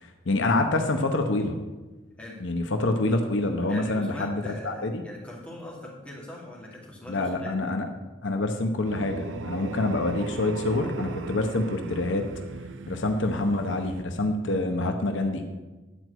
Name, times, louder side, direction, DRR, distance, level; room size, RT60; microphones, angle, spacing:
voice 1, 0.0-1.6 2.4-5.0 7.1-7.9 8.2-12.3 12.9-15.4, left 2 dB, 70° left, 5 dB, 0.9 m, -26 dB
voice 2, 3.6-7.5, left 1 dB, 5° left, -4 dB, 2.2 m, -41 dB
sound 1, 8.8-14.0, right 4 dB, 70° right, 0.4 m, -38 dB
10.0 x 4.6 x 7.8 m, 1.2 s
head